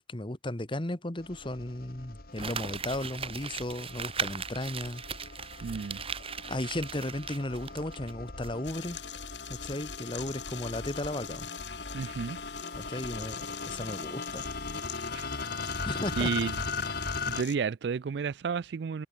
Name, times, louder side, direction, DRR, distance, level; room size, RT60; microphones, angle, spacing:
voice 1, 0.0-5.0 6.5-9.0 9.5-11.5 12.7-14.5 15.8-16.3, left 1 dB, 30° left, 1.4 m, -35 dB
sound 1, 1.2-17.4, left 4 dB, 55° left, 2.3 m, -39 dB
Crumpling crinkling, 2.4-8.1 8.4-8.5, right 6 dB, 30° right, 2.2 m, -38 dB
voice 2, 5.6-6.0 11.9-12.4 15.1-15.3 16.2-16.6 17.3-19.1, right 6 dB, 65° right, 0.4 m, -31 dB
sound 2, 8.6-17.6, left 11 dB, 80° left, 7.6 m, -44 dB
head